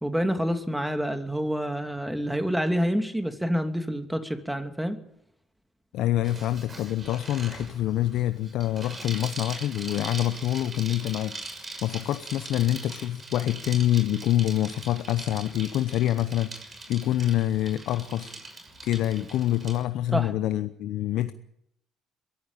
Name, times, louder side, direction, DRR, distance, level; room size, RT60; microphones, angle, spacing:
voice 1, 0.0-5.0 20.1-20.3, equal, 5° right, 2.8 m, -27 dB
voice 2, 5.9-18.3 18.8-21.3, left 13 dB, 70° left, 0.8 m, -26 dB
Bicycle, 6.2-19.8, right 2 dB, 35° right, 6.4 m, -41 dB
22.5 x 15.0 x 8.8 m
supercardioid pair, 65°, 0 cm